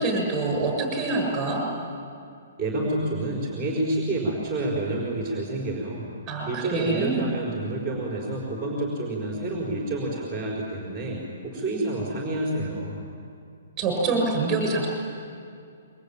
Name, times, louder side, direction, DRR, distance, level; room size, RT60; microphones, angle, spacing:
voice 1, 0.0-1.6 6.3-7.3 13.8-14.9, right 3 dB, 20° right, 2 dB, 7.3 m, -25 dB
voice 2, 2.6-6.0 6.5-13.0, right 2 dB, ahead, -3 dB, 5.2 m, -28 dB
27.0 x 24.0 x 9.0 m, 2.4 s
hypercardioid pair, 165°, 0 cm